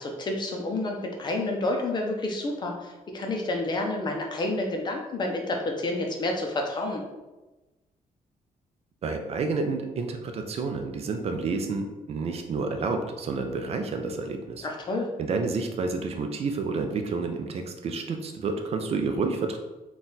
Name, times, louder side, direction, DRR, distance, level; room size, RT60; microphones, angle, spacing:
voice 1, 0.0-7.0 14.6-15.1, left 2 dB, 30° left, 1 dB, 0.5 m, -29 dB
voice 2, 9.0-14.7 15.2-19.6, right 4 dB, 45° right, 5 dB, 0.4 m, -29 dB
4.1 x 2.3 x 3.9 m, 1.1 s
wide cardioid pair, 175°, 15 cm